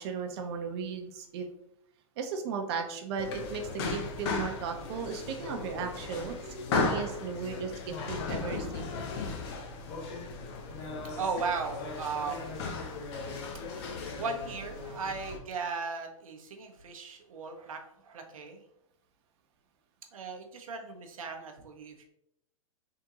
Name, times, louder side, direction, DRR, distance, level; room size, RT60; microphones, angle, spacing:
voice 1, 0.0-1.5 2.2-8.8, right 5 dB, 50° right, 5 dB, 0.8 m, -36 dB
sound 1, 3.2-15.4, left 4 dB, 50° left, 0.8 m, -36 dB
voice 2, 11.2-13.4 13.7-18.6 20.1-22.0, right 4 dB, 75° right, 4 dB, 0.9 m, -37 dB
3.7 x 3.5 x 2.9 m, 0.76 s
hypercardioid pair, 125°, 18 cm